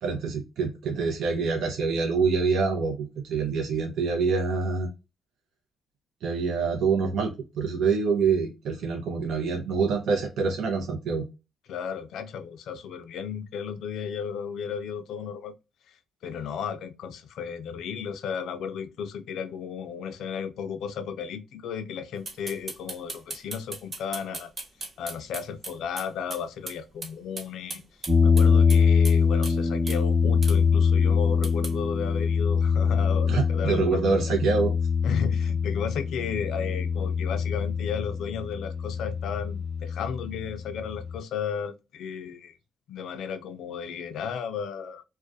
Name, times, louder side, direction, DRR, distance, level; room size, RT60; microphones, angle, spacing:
voice 1, 0.0-4.9 6.2-11.3 33.3-34.7, right 5 dB, 70° right, 0.5 m, -26 dB
voice 2, 11.7-15.5 15.9-16.0 16.2-24.5 25.0-27.8 28.2-34.2 35.0-42.6 42.9-45.0, left 7 dB, 75° left, 0.4 m, -34 dB
sound 1, 22.3-26.4 26.7-26.8 27.0-27.1 27.4-29.2 29.4-29.5 29.9-30.0 30.4-30.6 31.4-31.7, right 3 dB, 40° right, 0.9 m, -37 dB
sound 2, 28.1-41.2, left 6 dB, 15° right, 0.7 m, -24 dB
2.3 x 2.1 x 2.5 m
cardioid pair, 90°, 0 cm